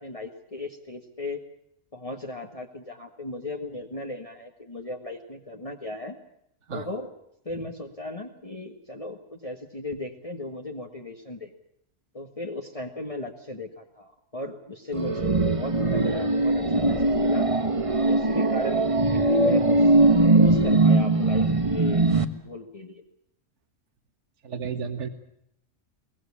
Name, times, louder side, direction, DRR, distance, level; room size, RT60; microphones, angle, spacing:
voice 1, 0.0-1.4 1.9-6.2 6.7-7.1 7.4-11.5 12.1-17.5 17.9-20.0 20.3-22.0 22.3-23.0, left 2 dB, 25° left, 2 dB, 1.7 m, -36 dB
sound 1, 14.9-22.2, right 2 dB, 25° right, 1.3 m, -21 dB
voice 2, 24.4-25.1, right 6 dB, 60° right, 9 dB, 1.9 m, -32 dB
22.5 x 19.0 x 8.5 m, 0.75 s
omnidirectional pair, 1.4 m